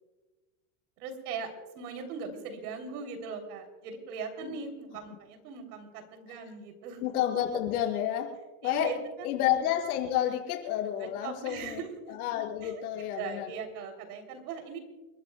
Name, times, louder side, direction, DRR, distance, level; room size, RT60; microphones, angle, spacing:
voice 1, 1.0-7.0 8.6-9.3 11.0-11.9 12.6-12.8 13.1-14.8, right 5 dB, 75° right, 5 dB, 3.3 m, -39 dB
voice 2, 7.0-8.3 8.6-8.9 9.2-11.8 12.1-13.5, left 11 dB, 70° left, 0 dB, 5.5 m, -30 dB
29.0 x 14.0 x 2.3 m, 1.2 s
supercardioid pair, 165°, 45 cm